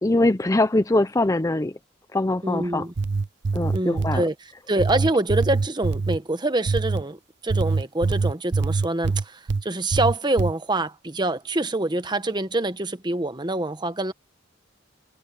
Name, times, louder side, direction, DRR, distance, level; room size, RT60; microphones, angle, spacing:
voice 1, 0.0-1.7 2.1-2.9 3.5-4.2, left 2 dB, 15° left, 0.5 m, -22 dB
voice 2, 2.4-2.9 3.7-4.3 4.7-14.1, right 2 dB, 20° right, 1.1 m, -25 dB
sound 1, 2.8-4.2 4.8-6.2 6.7-7.0 7.5-9.6 9.9-10.5, right 4 dB, 60° right, 0.6 m, -24 dB
head